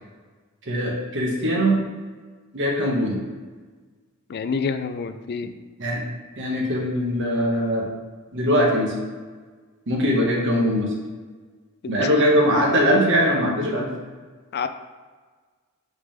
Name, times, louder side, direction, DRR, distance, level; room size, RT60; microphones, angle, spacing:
voice 1, 0.7-1.8 2.5-3.2 5.8-6.0 6.4-7.9 8.3-8.9 9.9-10.9 11.9-13.9, equal, 60° right, -1 dB, 1.4 m, -21 dB
voice 2, 4.3-5.5 11.8-12.1 14.5-14.7, left 5 dB, 50° left, 9 dB, 0.4 m, -28 dB
8.0 x 3.7 x 3.6 m, 1.4 s
head